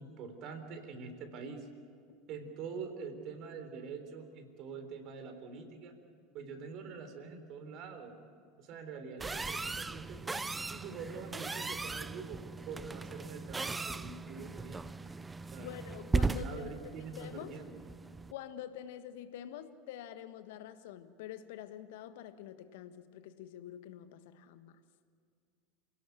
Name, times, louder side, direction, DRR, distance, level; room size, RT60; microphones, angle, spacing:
voice 1, 0.0-1.7 2.3-6.0 6.3-8.2 8.6-10.4 10.7-12.4 12.7-14.8 15.5-15.7 16.3-17.8, right 5 dB, 50° right, 8 dB, 3.7 m, -45 dB
sound 1, 9.2-18.3, right 3 dB, 15° right, 0.7 m, -38 dB
voice 2, 15.6-16.7 17.2-17.6 18.3-24.8, left 11 dB, 65° left, 11 dB, 1.5 m, -46 dB
28.0 x 17.5 x 8.3 m, 2.2 s
figure-of-eight pair, 80°, 0 cm